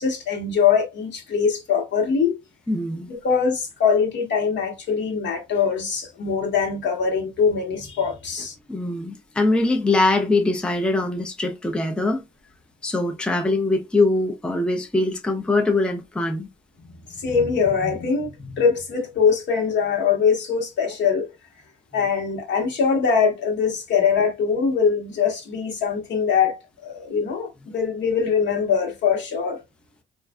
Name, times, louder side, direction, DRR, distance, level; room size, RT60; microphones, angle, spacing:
voice 1, 0.0-2.4 3.1-8.5 17.2-21.3 21.9-29.6, left 6 dB, 65° left, 1.1 m, -22 dB
voice 2, 2.7-3.1 8.7-12.2 12.8-16.5, left 2 dB, 5° left, 0.4 m, -22 dB
3.2 x 2.4 x 2.2 m
cardioid pair, 90°, 20 cm